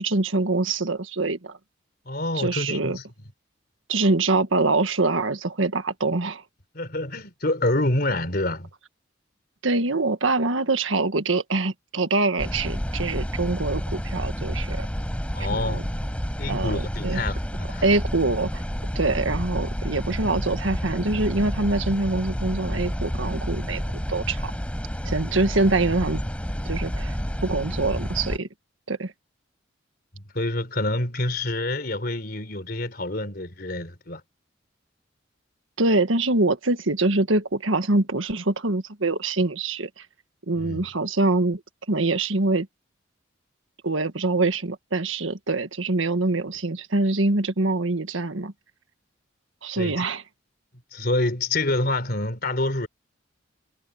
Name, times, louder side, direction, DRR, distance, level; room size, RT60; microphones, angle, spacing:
voice 1, 0.0-1.6 2.4-3.0 3.9-6.4 9.6-14.9 15.5-15.8 16.5-17.2 17.8-18.6 19.0-23.8 24.1-24.5 25.1-26.2 26.7-27.2 27.4-28.5 28.9-29.1 35.8-40.1 40.5-41.6 41.9-42.7 43.8-48.5 49.6-50.2, right 2 dB, 85° right, 1.7 m, -24 dB
voice 2, 2.1-3.0 6.7-8.7 15.3-15.8 16.4-17.8 30.1-34.2 40.6-40.8 49.8-50.0 50.9-52.9, left 2 dB, 50° left, 3.7 m, -27 dB
sound 1, 12.4-28.4, equal, 5° left, 4.3 m, -29 dB
head